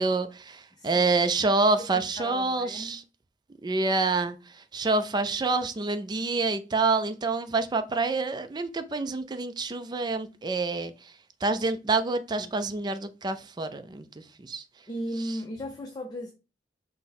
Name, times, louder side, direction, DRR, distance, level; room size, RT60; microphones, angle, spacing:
voice 1, 0.0-3.0 3.6-4.4 4.7-10.9 11.4-14.6, right 3 dB, 25° right, 0.4 m, -27 dB
voice 2, 0.7-1.1 1.9-3.0 12.4-12.5 14.9-16.3, equal, 25° left, 0.5 m, -36 dB
5.8 x 2.1 x 4.2 m
head